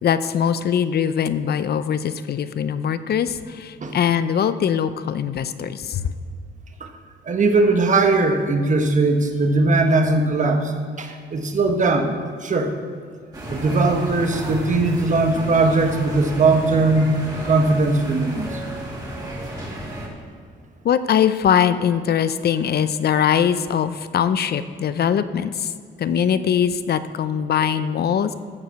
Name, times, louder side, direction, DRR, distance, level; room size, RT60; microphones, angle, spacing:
voice 1, 0.0-6.1 20.8-25.7 26.0-28.3, left 8 dB, 55° left, 13 dB, 0.6 m, -21 dB
voice 2, 7.2-10.7 11.0-12.2 12.4-12.8 13.5-17.1 17.4-18.6, right 3 dB, 40° right, 5 dB, 1.3 m, -19 dB
sound 1, 13.3-20.1, right 1 dB, 20° right, 2.7 m, -32 dB
14.0 x 4.9 x 6.8 m, 2.1 s
cardioid pair, 90°, 20 cm